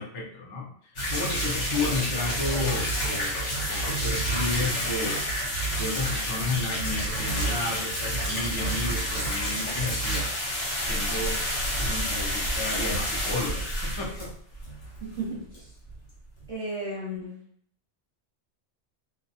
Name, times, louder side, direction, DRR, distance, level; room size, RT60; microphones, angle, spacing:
voice 1, 0.0-5.3 5.7-10.3 10.8-11.4 11.8-14.3, left 3 dB, 40° left, -1 dB, 0.4 m, -32 dB
sound 1, 1.0-15.3 15.5-15.6 15.9-16.0 16.4-16.5, equal, 90° left, 1.3 m, -29 dB
voice 2, 15.0-15.7 16.5-17.4, right 1 dB, 35° right, -8 dB, 0.7 m, -34 dB
2.7 x 2.2 x 2.7 m, 0.63 s
omnidirectional pair, 1.2 m